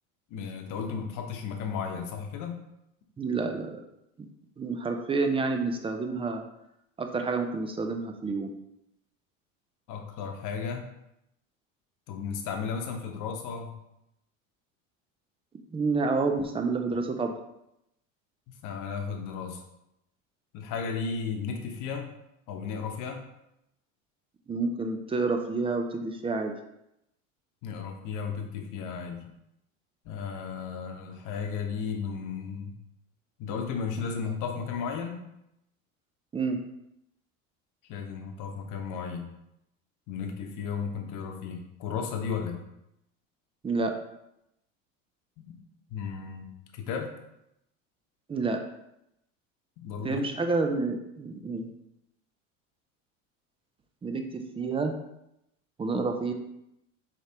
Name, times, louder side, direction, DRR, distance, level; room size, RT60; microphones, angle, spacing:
voice 1, 0.3-2.6 9.9-10.9 12.1-13.7 18.5-19.6 20.5-22.1 22.5-23.2 27.6-29.3 30.0-32.8 33.4-35.2 37.9-39.3 40.1-42.6 45.4-45.6 45.9-46.4 46.7-47.1 49.8-50.3, left 6 dB, 55° left, 4 dB, 0.9 m, -34 dB
voice 2, 3.2-3.8 4.6-6.4 7.0-8.5 15.7-17.4 24.5-26.5 36.3-36.6 43.6-43.9 48.3-48.6 50.0-51.7 54.0-54.9 55.8-56.3, right 3 dB, 15° right, 5 dB, 0.4 m, -29 dB
4.7 x 3.4 x 2.8 m, 0.83 s
hypercardioid pair, 90°, 39 cm